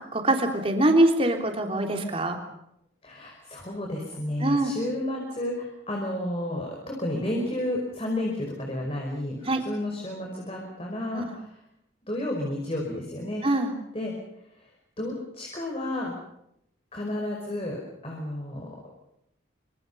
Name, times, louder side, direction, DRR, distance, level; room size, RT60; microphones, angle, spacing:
voice 1, 0.1-2.4 4.4-4.7 9.4-9.6 11.1-11.3 13.4-13.7, right 1 dB, 30° right, 4 dB, 3.4 m, -23 dB
voice 2, 3.0-11.5 12.1-13.5 13.9-14.1 15.0-16.1 16.9-18.7, left 1 dB, 30° left, 0 dB, 5.3 m, -31 dB
27.0 x 26.0 x 5.6 m, 0.77 s
head